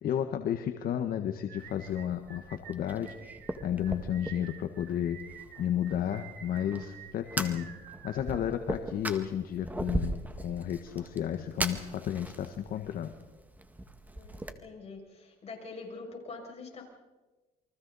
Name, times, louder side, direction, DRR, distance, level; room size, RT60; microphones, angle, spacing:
voice 1, 0.0-3.2 3.6-5.2 5.6-13.1, left 10 dB, 60° left, 7 dB, 1.3 m, -32 dB
sound 1, 1.5-8.8, right 8 dB, 65° right, 2.3 m, -50 dB
Fire, 1.6-14.5, right 1 dB, 10° right, 1.8 m, -40 dB
voice 2, 14.1-16.8, left 3 dB, 40° left, 0 dB, 6.3 m, -44 dB
29.0 x 24.0 x 4.1 m, 1.2 s
cardioid pair, 110°, 17 cm